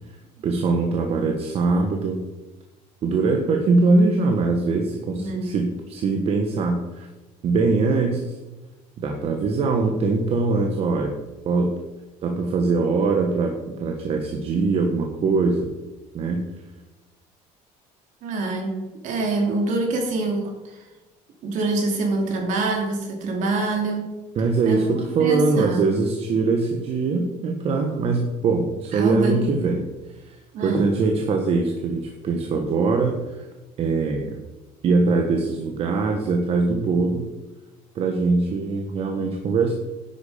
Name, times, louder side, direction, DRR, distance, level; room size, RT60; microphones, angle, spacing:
voice 1, 0.4-2.2 3.0-7.1 7.4-8.4 9.0-11.2 11.4-11.7 12.2-13.5 13.8-15.7 16.1-16.4 24.3-29.8 30.2-33.4 33.8-34.3 34.8-37.3 37.9-39.7, right 3 dB, 40° right, 3 dB, 1.4 m, -22 dB
voice 2, 5.1-5.6 18.2-20.8 21.4-24.1 24.6-24.8 25.2-26.0 28.9-29.5 30.5-30.9, right 2 dB, 60° right, 2 dB, 3.2 m, -25 dB
11.0 x 8.6 x 5.1 m, 1.2 s
cardioid pair, 150°, 15 cm